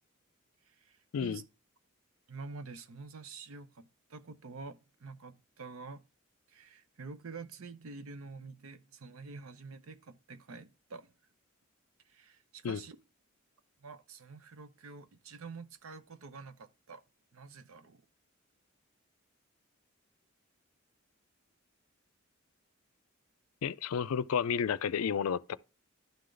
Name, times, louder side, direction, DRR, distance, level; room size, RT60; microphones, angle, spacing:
voice 1, 0.6-1.4 2.3-6.0 6.5-11.1 12.1-13.0 13.8-17.0 17.3-18.0, right 4 dB, 85° right, 0.7 m, -48 dB
voice 2, 23.6-25.6, left 7 dB, 90° left, 0.4 m, -31 dB
11.5 x 3.9 x 3.2 m
head